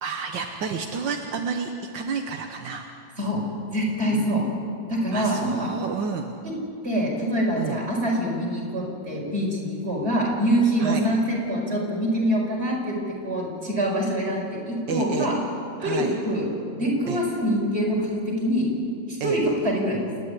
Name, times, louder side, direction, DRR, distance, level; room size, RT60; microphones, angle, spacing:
voice 1, 0.0-2.9 4.1-4.3 5.1-6.3 7.6-7.8 10.8-11.1 14.9-15.3 15.8-16.1 17.1-17.2 19.2-19.4, right 6 dB, 80° right, 3 dB, 1.8 m, -30 dB
voice 2, 3.7-4.4 4.9-5.7 6.8-13.0 13.2-15.3 15.8-16.5 16.7-18.7 19.2-20.0, equal, 35° right, -2 dB, 5.4 m, -25 dB
28.5 x 10.5 x 9.8 m, 2.5 s
omnidirectional pair, 2.0 m